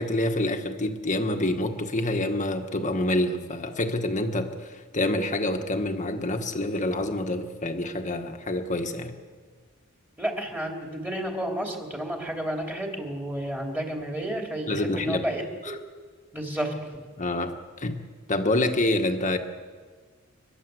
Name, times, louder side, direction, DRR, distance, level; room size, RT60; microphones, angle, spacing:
voice 1, 0.0-9.2 14.7-15.3 17.2-18.0 18.3-19.4, left 1 dB, 35° left, 6 dB, 1.6 m, -27 dB
voice 2, 10.2-15.7 16.3-17.0, right 1 dB, 10° right, 1 dB, 3.2 m, -31 dB
30.0 x 11.5 x 7.9 m, 1.5 s
head